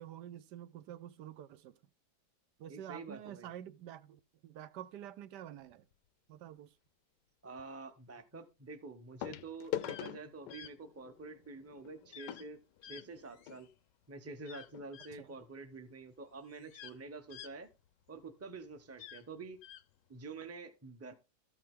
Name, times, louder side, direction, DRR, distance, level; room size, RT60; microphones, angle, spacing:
voice 1, 0.0-1.8 2.6-5.8 6.3-6.7 15.2-15.4, right 11 dB, 85° right, 1.3 m, -48 dB
voice 2, 2.7-3.5 7.4-13.7 14.1-17.7 18.1-19.6 20.1-21.1, right 3 dB, 15° right, 0.7 m, -48 dB
sound 1, 5.6-5.9 7.6-7.7 9.2-13.6 14.4-14.5 14.7-14.9 15.4-15.5, left 12 dB, 85° left, 1.3 m, -44 dB
sound 2, 9.8-10.1 10.5-10.7 12.1-12.5 12.8-13.7 14.4-15.1 16.0-16.1 16.4-18.2 18.9-19.8, left 10 dB, 65° left, 0.9 m, -52 dB
13.5 x 5.7 x 3.6 m
omnidirectional pair, 1.8 m